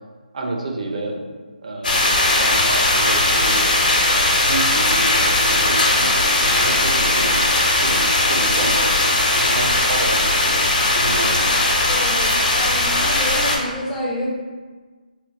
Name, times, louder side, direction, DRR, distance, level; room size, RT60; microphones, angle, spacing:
voice 1, 0.3-1.2 1.6-3.7 4.4-10.6 10.9-11.7, right 2 dB, 50° right, 1 dB, 0.6 m, -29 dB
sound 1, 1.8-13.6, left 2 dB, 70° left, 0.9 m, -18 dB
voice 2, 11.9-14.3, left 1 dB, 10° left, -5 dB, 0.4 m, -28 dB
3.7 x 2.0 x 4.1 m, 1.4 s
figure-of-eight pair, 155°, 5 cm